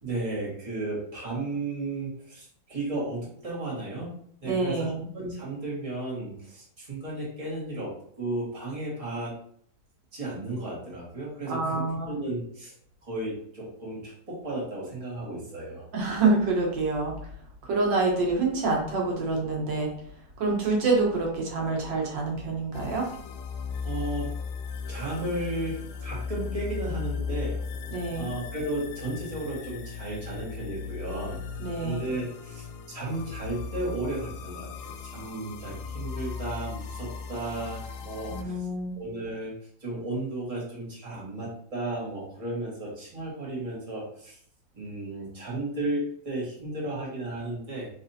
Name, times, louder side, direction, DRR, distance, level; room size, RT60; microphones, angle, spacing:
voice 1, 0.0-9.4 10.1-12.7 13.0-15.9 23.8-24.3 24.9-27.6 28.1-31.4 31.8-38.7 38.9-39.5 39.8-44.4 44.7-47.9, right 2 dB, 20° right, -6 dB, 1.6 m, -34 dB
voice 2, 4.4-5.1 11.5-12.2 15.9-17.1 17.6-19.9 20.4-23.1 27.9-28.3 31.6-32.0 38.3-38.9, right 3 dB, 85° right, -1 dB, 1.8 m, -26 dB
sound 1, 22.7-38.4, left 5 dB, 75° left, 1.1 m, -37 dB
5.3 x 3.2 x 2.7 m, 0.63 s
omnidirectional pair, 1.9 m